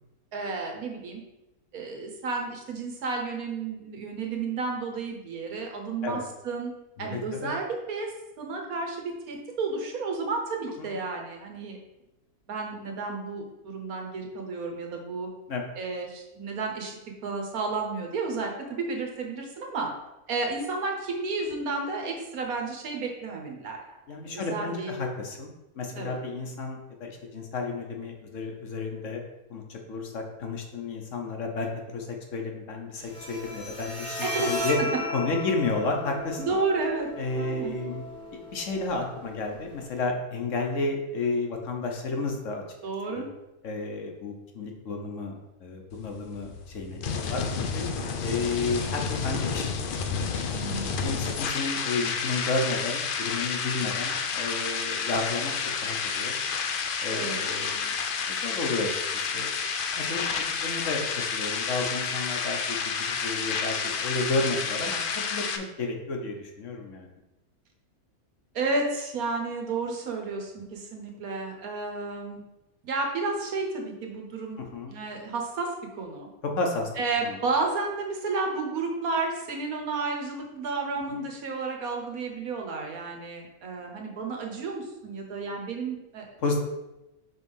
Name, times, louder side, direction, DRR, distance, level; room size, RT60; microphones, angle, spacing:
voice 1, 0.3-1.2 1.7-6.7 7.0-8.1 8.4-11.8 12.5-15.3 15.8-16.9 17.2-19.9 20.3-23.8 24.1-25.0 26.0-26.2 34.2-34.5 36.4-37.1 37.3-37.7 42.8-43.2 50.5-51.0 57.1-57.4 68.5-72.4 72.8-74.6 74.9-76.3 77.0-86.3, right 3 dB, 75° right, 2 dB, 1.5 m, -32 dB
voice 2, 7.0-7.5 10.8-10.9 15.5-15.6 24.1-25.5 25.8-29.2 29.5-34.8 35.1-36.4 37.2-38.0 38.5-42.6 43.1-43.3 43.6-47.9 48.2-49.7 50.1-50.4 51.0-56.4 57.0-57.9 58.3-59.5 59.9-60.3 60.6-67.1 74.6-74.9 76.6-76.9 77.2-77.4 81.1-81.2 86.4-86.6, left 3 dB, 60° left, 2 dB, 1.2 m, -32 dB
Bowed string instrument, 33.0-40.0, left 1 dB, 5° left, 1.2 m, -36 dB
sound 1, 45.9-65.6, left 5 dB, 75° left, 0.4 m, -30 dB
5.3 x 3.5 x 5.4 m, 0.95 s
omnidirectional pair, 1.6 m